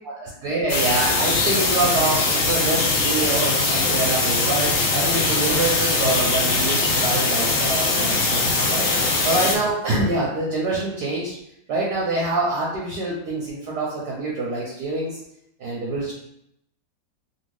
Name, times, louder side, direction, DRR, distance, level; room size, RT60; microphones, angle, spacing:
voice 1, 0.2-8.9 9.2-11.4 11.7-15.2 15.6-16.1, right 2 dB, 70° right, -4 dB, 1.2 m, -25 dB
sound 1, 0.7-9.6, left 3 dB, 75° left, 0.6 m, -21 dB
3.0 x 2.7 x 3.1 m, 0.76 s
omnidirectional pair, 2.1 m